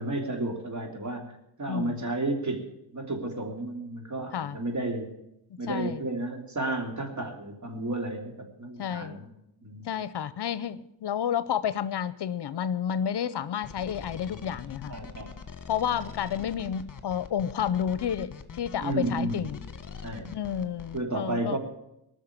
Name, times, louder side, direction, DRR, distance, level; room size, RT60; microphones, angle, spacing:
voice 1, 0.0-2.6 2.9-5.1 5.6-8.3 8.6-9.3 9.6-9.9 14.3-15.3 18.8-19.4 20.0-20.4 20.9-21.6, right 2 dB, 40° right, 3.3 m, -32 dB
voice 2, 1.7-2.0 4.3-4.6 5.5-6.0 8.8-9.2 9.8-15.0 15.7-19.6 20.3-21.6, left 8 dB, 65° left, 0.8 m, -30 dB
sound 1, 13.6-21.0, left 6 dB, 45° left, 1.5 m, -43 dB
19.0 x 6.6 x 9.9 m
cardioid pair, 75°, 44 cm